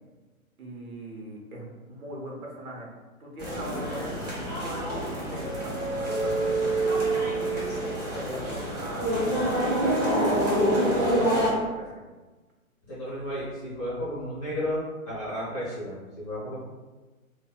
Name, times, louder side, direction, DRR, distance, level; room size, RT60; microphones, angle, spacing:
voice 1, 0.6-2.9 3.2-6.8 7.4-7.8 8.1-9.6 9.9-12.1, right 1 dB, 80° right, -1 dB, 0.8 m, -40 dB
sound 1, 3.4-11.5, right 1 dB, 30° right, 0.5 m, -26 dB
voice 2, 12.8-14.8 15.1-16.6, equal, 15° left, -11 dB, 0.6 m, -33 dB
2.5 x 2.1 x 2.3 m, 1.3 s
figure-of-eight pair, 125°, 42 cm